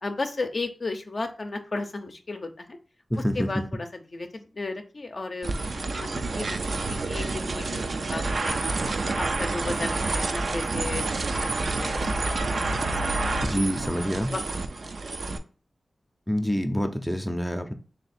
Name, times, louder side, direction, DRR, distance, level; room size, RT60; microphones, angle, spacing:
voice 1, 0.0-2.8 3.3-6.6 6.9-8.8 9.2-11.0 11.4-12.1 12.4-13.4 14.3-14.4 14.8-15.0 15.3-15.4, left 3 dB, 55° left, 5 dB, 0.5 m, -34 dB
voice 2, 3.1-3.5 13.4-14.3 16.3-17.7, equal, 5° left, 5 dB, 0.5 m, -27 dB
sound 1, 5.4-15.4, right 3 dB, 70° right, 0.4 m, -28 dB
3.2 x 2.8 x 4.1 m, 0.37 s
cardioid pair, 50°, 0 cm